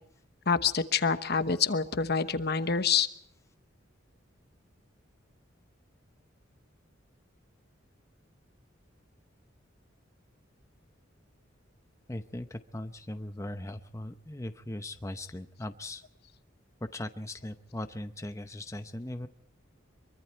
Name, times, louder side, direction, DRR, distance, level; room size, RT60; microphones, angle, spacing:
voice 1, 0.5-3.1, left 6 dB, 55° left, 11 dB, 1.1 m, -27 dB
voice 2, 12.1-16.0 16.8-19.3, left 1 dB, 15° left, 8 dB, 0.8 m, -39 dB
24.0 x 23.5 x 4.5 m, 0.67 s
head